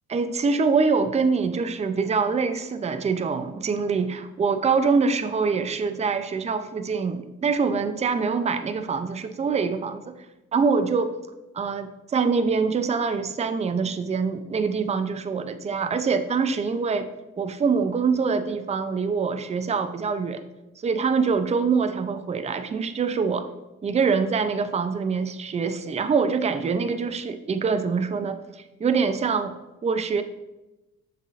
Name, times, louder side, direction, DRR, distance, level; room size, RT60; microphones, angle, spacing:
voice 1, 0.1-10.2 10.5-11.1 11.5-17.1 17.4-20.4 20.8-23.5 23.8-29.5 29.8-30.2, right 5 dB, 20° right, 9 dB, 0.4 m, -24 dB
7.1 x 5.8 x 2.5 m, 1.0 s
cardioid pair, 90°, 30 cm